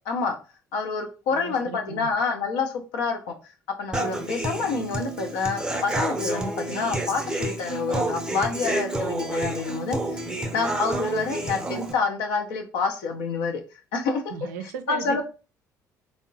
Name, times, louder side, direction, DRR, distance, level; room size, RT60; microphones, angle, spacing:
voice 1, 0.1-0.4 0.7-3.4 3.8-10.2 10.5-13.6 13.9-14.2 14.9-15.2, left 4 dB, 75° left, 4 dB, 0.6 m, -27 dB
voice 2, 1.3-2.1 14.3-15.2, right 7 dB, 85° right, 8 dB, 0.4 m, -36 dB
Human voice / Acoustic guitar, 3.9-11.9, right 2 dB, 10° right, 0.6 m, -29 dB
3.6 x 2.0 x 2.6 m, 0.33 s
hypercardioid pair, 55°, 9 cm